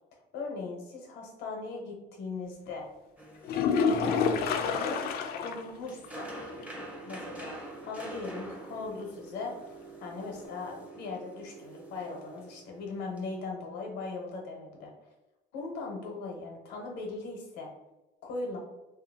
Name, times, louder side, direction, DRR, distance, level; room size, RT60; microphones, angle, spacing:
voice 1, 0.3-2.9 3.8-4.3 4.6-5.0 5.3-6.3 7.0-9.5 10.0-14.9 15.5-17.7 18.2-18.6, left 3 dB, 90° left, 0 dB, 0.9 m, -39 dB
sound 1, 3.2-13.3, right 1 dB, 5° right, 0.5 m, -46 dB
sound 2, 3.4-5.7 6.0-6.1 6.6-6.7 10.5-10.6, left 5 dB, 65° left, 0.4 m, -28 dB
2.8 x 2.6 x 2.7 m, 1.0 s
cardioid pair, 110°, 17 cm